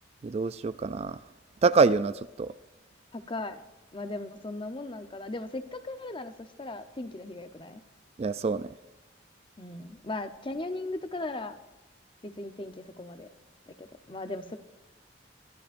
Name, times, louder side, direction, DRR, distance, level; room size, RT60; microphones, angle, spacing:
voice 1, 0.2-1.2 1.6-2.5 8.2-8.7, right 4 dB, 35° right, 0.3 m, -25 dB
voice 2, 3.1-3.6 3.9-6.3 6.6-7.8 9.6-11.5 12.2-13.3 13.7-14.6, left 2 dB, 30° left, 0.8 m, -37 dB
23.5 x 13.0 x 2.6 m
head